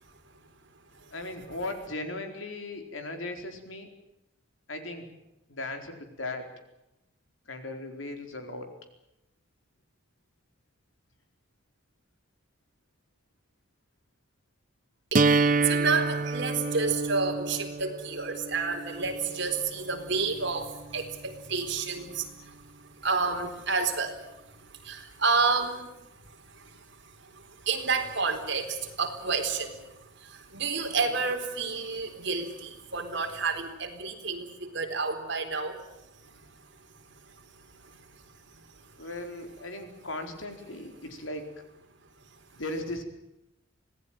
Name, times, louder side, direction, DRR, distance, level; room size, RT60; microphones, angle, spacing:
voice 1, 1.1-3.9 4.7-5.1 5.5-6.5 7.5-8.7 31.0-31.2 39.0-41.5 42.6-43.0, left 2 dB, 75° left, 5 dB, 4.5 m, -37 dB
sound 1, 15.1-21.1, right 3 dB, 40° right, 0.8 m, -29 dB
voice 2, 15.1-22.6 23.0-24.2 24.7-25.9 26.2-35.8, right 4 dB, 60° right, 4 dB, 4.1 m, -30 dB
26.0 x 18.0 x 9.2 m, 0.89 s
head